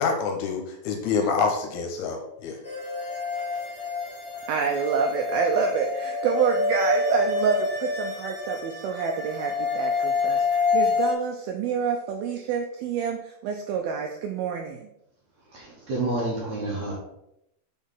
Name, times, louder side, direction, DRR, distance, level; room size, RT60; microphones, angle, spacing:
voice 1, 0.0-2.6, left 5 dB, 75° left, 2 dB, 2.7 m, -26 dB
sound 1, 2.6-11.1, left 4 dB, 45° left, 1.7 m, -27 dB
voice 2, 4.5-14.8, right 6 dB, 80° right, 3 dB, 2.1 m, -27 dB
voice 3, 15.5-16.9, right 2 dB, 60° right, -4 dB, 2.0 m, -29 dB
6.1 x 4.0 x 5.4 m, 0.82 s
omnidirectional pair, 4.7 m